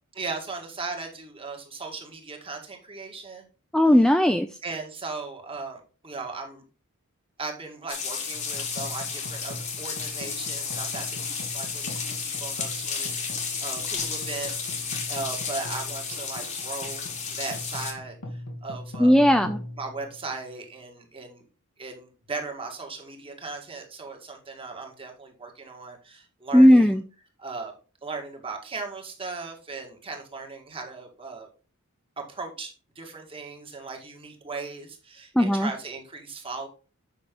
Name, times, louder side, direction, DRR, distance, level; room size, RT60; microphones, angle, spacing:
voice 1, 0.1-3.4 4.6-6.6 7.4-19.2 19.8-21.4 21.8-26.9 27.4-27.7 28.0-31.5 32.2-36.7, right 3 dB, 25° right, 2 dB, 1.8 m, -37 dB
voice 2, 3.7-4.5 19.0-19.6 26.5-27.0 35.4-35.7, equal, 5° left, 8 dB, 0.3 m, -17 dB
sound 1, 7.9-17.9, left 5 dB, 35° left, 1.7 m, -32 dB
sound 2, 8.3-20.7, left 1 dB, 70° left, 1.9 m, -41 dB
7.6 x 6.0 x 3.7 m, 0.35 s
head